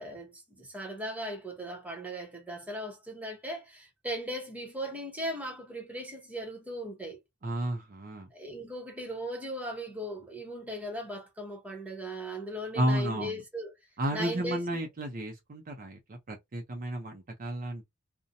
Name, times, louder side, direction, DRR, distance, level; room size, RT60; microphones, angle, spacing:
voice 1, 0.0-7.2 8.3-13.7 14.1-14.9, equal, 5° right, 0.9 m, -38 dB
voice 2, 7.4-8.3 12.7-13.4 14.0-17.8, right 1 dB, 40° right, 0.5 m, -32 dB
2.6 x 2.1 x 2.5 m
head